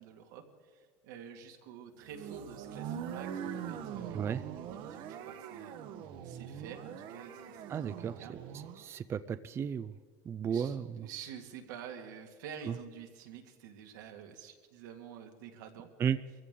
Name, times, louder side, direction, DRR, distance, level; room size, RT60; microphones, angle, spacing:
voice 1, 0.0-5.8 6.2-8.4 10.5-15.9, right 7 dB, 85° right, 3 dB, 1.9 m, -49 dB
sound 1, 2.0-8.9, right 8 dB, 55° right, 1.0 m, -43 dB
voice 2, 7.7-8.2 8.8-9.9 10.3-11.1 16.0-16.2, right 8 dB, 25° right, 13 dB, 0.4 m, -34 dB
23.5 x 15.0 x 3.7 m, 1.5 s
supercardioid pair, 125°, 10 cm